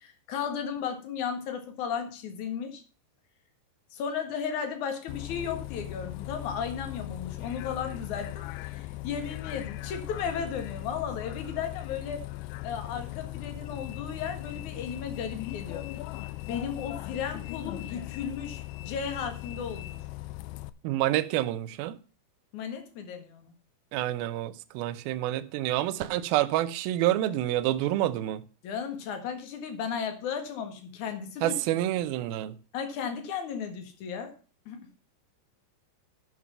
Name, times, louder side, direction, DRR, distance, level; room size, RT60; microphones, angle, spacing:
voice 1, 0.0-2.8 3.9-12.2 12.6-15.9 16.5-20.0 22.5-23.5 28.6-31.6 32.7-34.3 34.7-34.8, left 7 dB, 55° left, 2.5 m, -35 dB
Bus, 5.1-20.7, left 17 dB, 85° left, 2.8 m, -39 dB
voice 2, 20.8-22.0 23.9-28.4 31.4-32.5, right 14 dB, 85° right, 2.1 m, -28 dB
11.0 x 6.1 x 5.6 m
omnidirectional pair, 5.2 m